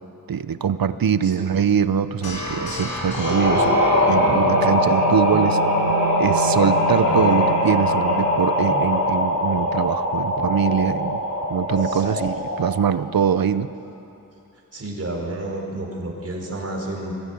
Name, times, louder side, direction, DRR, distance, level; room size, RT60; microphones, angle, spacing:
voice 1, 0.3-5.6 6.2-11.2 11.5-13.7, right 8 dB, 75° right, 13 dB, 0.7 m, -23 dB
sound 1, 2.2-9.2, right 1 dB, 85° left, 4.4 m, -29 dB
sound 2, 3.1-12.9, left 1 dB, 55° left, 5.2 m, -21 dB
voice 2, 11.8-12.2 14.7-17.1, right 2 dB, 40° right, -1 dB, 4.7 m, -31 dB
22.5 x 16.5 x 8.6 m, 2.8 s
wide cardioid pair, 100°, 35 cm